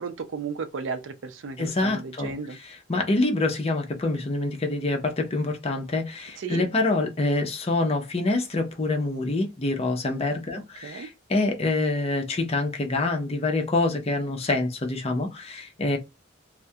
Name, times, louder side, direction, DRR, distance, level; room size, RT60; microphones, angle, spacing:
voice 1, 0.0-2.6 6.4-6.6 10.8-11.1, right 5 dB, 85° right, 0.4 m, -34 dB
voice 2, 1.6-16.0, left 2 dB, 35° left, 0.6 m, -26 dB
2.2 x 2.1 x 2.7 m
head